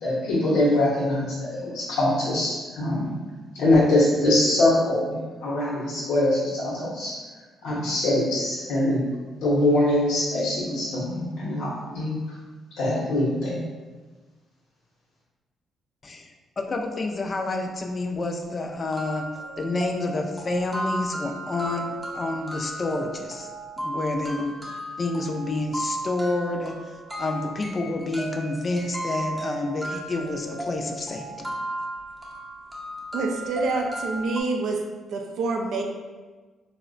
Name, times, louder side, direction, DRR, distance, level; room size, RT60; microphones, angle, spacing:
voice 1, 0.0-3.1 3.5-7.2 7.6-9.0 9.4-12.2 12.8-13.6, left 1 dB, 85° left, -8 dB, 0.7 m, -23 dB
voice 2, 16.6-19.3 19.6-23.5 23.8-24.6 25.0-31.5, left 2 dB, 35° left, 3 dB, 0.4 m, -29 dB
sound 1, 17.9-18.0 18.4-18.5 18.9-34.4, right 1 dB, 15° right, 0.6 m, -35 dB
voice 3, 33.1-34.8 35.1-35.8, right 3 dB, 70° right, 1 dB, 0.4 m, -27 dB
3.6 x 2.1 x 2.5 m, 1.3 s
cardioid pair, 90°, 0 cm